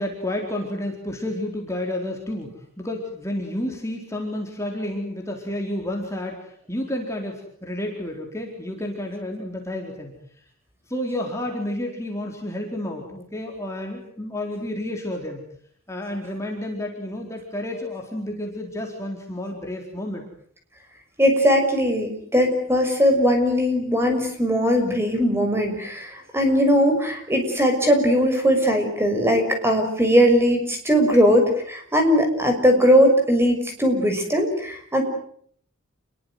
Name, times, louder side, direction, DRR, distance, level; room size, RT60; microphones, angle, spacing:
voice 1, 0.0-10.2 10.9-15.5 15.9-20.2, left 1 dB, 15° left, 1 dB, 4.2 m, -30 dB
voice 2, 21.2-35.0, equal, 10° right, 5 dB, 6.2 m, -19 dB
29.0 x 22.0 x 7.9 m, 0.63 s
head